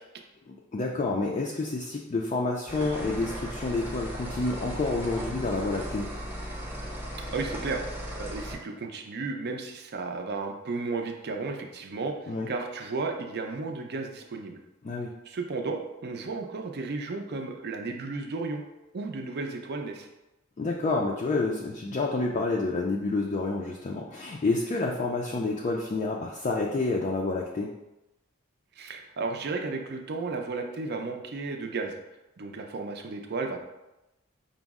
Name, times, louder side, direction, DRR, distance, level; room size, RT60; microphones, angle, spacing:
voice 1, 0.5-6.1 12.3-12.5 14.8-15.1 20.6-27.7, left 3 dB, 35° left, -1 dB, 0.3 m, -29 dB
sound 1, 2.7-8.5, equal, 10° right, 0.7 m, -36 dB
voice 2, 7.3-7.8 8.2-14.6 15.3-18.6 18.9-20.1 28.8-31.9 32.4-33.6, right 3 dB, 50° right, 3 dB, 0.5 m, -33 dB
5.1 x 2.0 x 3.5 m, 0.96 s
head